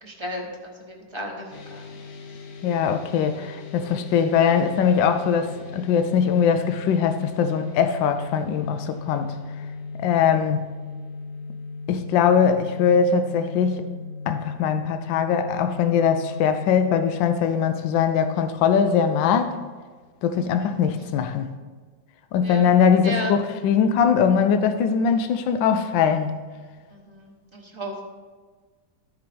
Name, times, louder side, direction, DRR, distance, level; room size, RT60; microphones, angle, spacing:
voice 1, 0.0-2.0 20.3-20.7 22.4-22.7 23.0-23.4 26.9-27.9, equal, 20° right, -1 dB, 1.0 m, -34 dB
sound 1, 1.5-17.5, left 4 dB, 60° left, 1.2 m, -37 dB
voice 2, 2.6-9.4 10.0-10.7 11.9-13.9 14.3-19.5 20.2-21.5 22.3-26.4, left 7 dB, 85° left, 9 dB, 1.3 m, -21 dB
13.5 x 4.8 x 4.3 m, 1.4 s
omnidirectional pair, 2.0 m